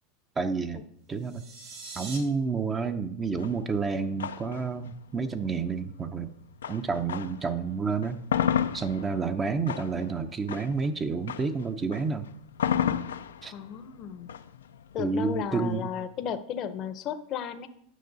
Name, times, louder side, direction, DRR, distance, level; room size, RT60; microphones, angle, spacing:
voice 1, 0.4-0.8 1.1-1.4 2.0-6.3 6.7-8.2 8.7-12.3 13.4-13.5 15.0-15.9, right 5 dB, 25° right, 7 dB, 0.6 m, -29 dB
sound 1, 1.1-2.2, right 3 dB, 60° right, 2.6 m, -42 dB
sound 2, 3.4-7.5 7.9-15.9, left 8 dB, 85° left, 0.4 m, -32 dB
voice 2, 13.5-14.3 14.9-17.7, left 8 dB, 45° left, 11 dB, 0.7 m, -34 dB
9.3 x 6.0 x 4.0 m, 0.71 s
hypercardioid pair, 95°, 0 cm